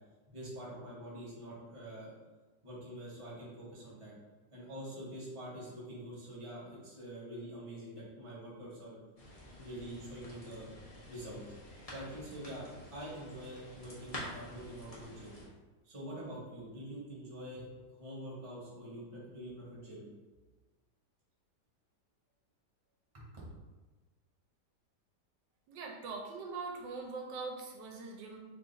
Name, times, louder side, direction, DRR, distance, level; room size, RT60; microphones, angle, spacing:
voice 1, 0.3-2.1 2.6-4.2 4.5-9.0 9.6-10.7 11.1-11.4 11.9-15.4 15.8-17.7 18.0-20.0, right 1 dB, 25° right, -6 dB, 0.8 m, -45 dB
sound 1, 9.2-15.5, left 1 dB, 40° left, 0.5 m, -49 dB
voice 2, 25.7-28.4, right 4 dB, 85° right, 0 dB, 1.3 m, -42 dB
3.2 x 2.4 x 3.8 m, 1.2 s
omnidirectional pair, 1.8 m